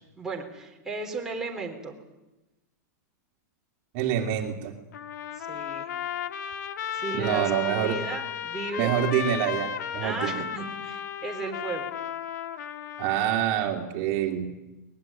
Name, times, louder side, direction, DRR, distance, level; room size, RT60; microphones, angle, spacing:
voice 1, 0.2-1.9 5.4-5.9 6.9-8.9 10.0-11.9, right 3 dB, 5° right, -1 dB, 4.0 m, -35 dB
voice 2, 3.9-4.7 7.1-8.0 8.8-10.4 13.0-14.5, right 10 dB, 40° right, 2 dB, 3.0 m, -26 dB
Trumpet, 4.9-13.7, left 8 dB, 75° left, 1.6 m, -34 dB
23.0 x 21.0 x 9.1 m, 1.0 s
supercardioid pair, 155°, 10 cm